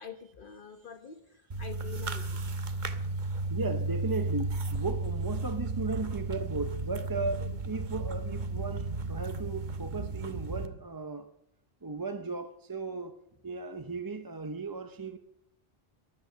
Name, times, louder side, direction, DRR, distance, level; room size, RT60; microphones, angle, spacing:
voice 1, 0.0-2.4 7.4-7.5, left 5 dB, 60° left, 1.2 m, -46 dB
sound 1, 1.5-10.7, right 3 dB, 50° right, 1.2 m, -34 dB
voice 2, 3.5-11.3 11.8-13.2 13.4-15.2, right 3 dB, 25° right, 0.7 m, -36 dB
13.0 x 11.0 x 7.5 m
omnidirectional pair, 1.0 m